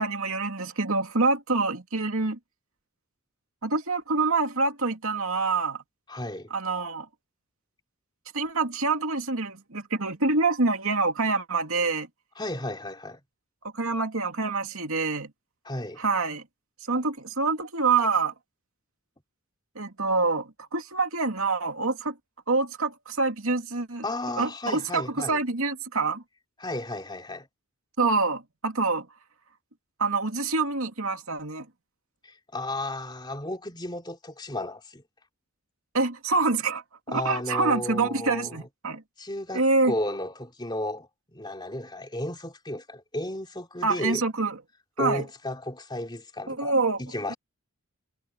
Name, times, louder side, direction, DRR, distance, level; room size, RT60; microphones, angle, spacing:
voice 1, 0.0-2.4 3.6-5.8 6.5-7.1 8.3-12.1 13.7-15.3 16.0-16.4 16.9-18.3 19.8-22.2 22.5-24.0 24.4-26.2 28.0-29.1 30.0-31.7 35.9-36.8 37.1-39.0 39.5-39.9 43.8-44.6 45.0-45.2 46.5-47.0 47.3-47.4, right 3 dB, 70° right, 2.6 m, -26 dB
voice 2, 6.1-6.5 12.4-13.2 15.6-16.0 24.0-25.4 26.6-27.5 32.2-35.0 37.1-38.7 39.2-44.2 45.0-46.7 47.0-47.4, left 1 dB, 20° left, 3.3 m, -34 dB
head